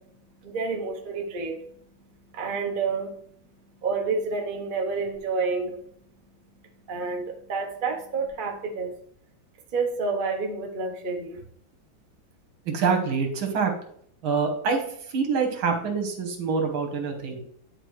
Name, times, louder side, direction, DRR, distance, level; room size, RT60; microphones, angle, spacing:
voice 1, 0.4-1.6 2.3-3.1 3.8-5.8 6.9-8.9 9.7-11.4, right 4 dB, 50° right, 3 dB, 0.6 m, -29 dB
voice 2, 12.7-13.7 14.2-14.8 15.1-17.4, right 5 dB, 70° right, 4 dB, 2.0 m, -25 dB
9.8 x 4.4 x 3.2 m, 0.65 s
omnidirectional pair, 2.3 m